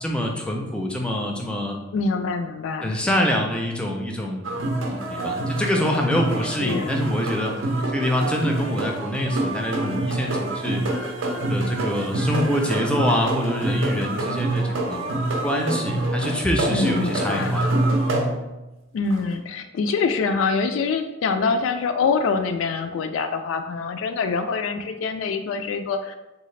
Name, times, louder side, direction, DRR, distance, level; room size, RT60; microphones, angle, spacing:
voice 1, 0.0-1.8 2.8-4.5 4.9-7.6 7.9-10.8 11.5-15.1 15.4-17.7, left 1 dB, 5° left, 0 dB, 0.4 m, -25 dB
voice 2, 1.9-2.9 6.6-7.0 16.7-17.6 18.9-26.2, left 4 dB, 80° left, 8 dB, 0.3 m, -25 dB
sound 1, 4.4-18.6 19.1-19.2, right 1 dB, 75° right, 0.5 m, -26 dB
3.7 x 2.4 x 3.2 m, 0.98 s
head